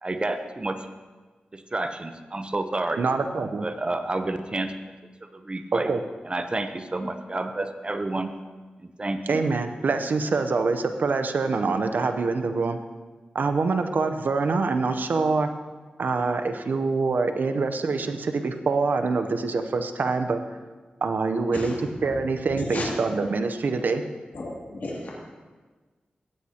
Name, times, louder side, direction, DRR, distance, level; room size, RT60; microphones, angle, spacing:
voice 1, 0.0-0.9 1.5-3.0 3.6-4.7 5.3-5.9 6.2-8.3 8.8-9.4, right 2 dB, 30° right, 8 dB, 0.7 m, -30 dB
voice 2, 3.0-3.6 5.7-6.0 9.3-12.8 13.3-15.5 16.0-20.4 21.0-21.7 22.0-24.0, right 4 dB, 70° right, 7 dB, 0.7 m, -25 dB
voice 3, 22.6-22.9 24.3-25.1, left 2 dB, 60° left, -4 dB, 2.5 m, -33 dB
15.5 x 9.8 x 2.9 m, 1.3 s
cardioid pair, 60°, 3 cm